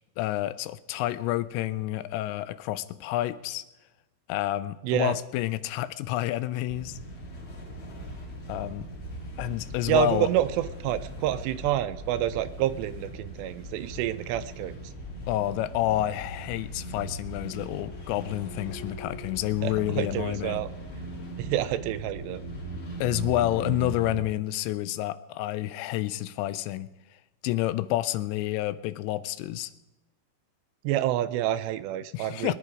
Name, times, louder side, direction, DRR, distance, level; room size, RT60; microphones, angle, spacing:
voice 1, 0.2-3.6 4.3-7.0 8.5-8.9 9.4-10.3 15.3-20.6 23.0-26.9 27.4-29.7 32.1-32.5, left 14 dB, 85° left, 15 dB, 2.9 m, -29 dB
voice 2, 4.8-5.1 9.9-14.8 19.6-20.7 21.4-22.4 30.8-32.5, right 13 dB, 80° right, 12 dB, 2.7 m, -28 dB
sound 1, 6.7-24.2, right 1 dB, 35° left, 3.0 m, -39 dB
23.0 x 11.0 x 4.9 m, 1.0 s
omnidirectional pair, 5.1 m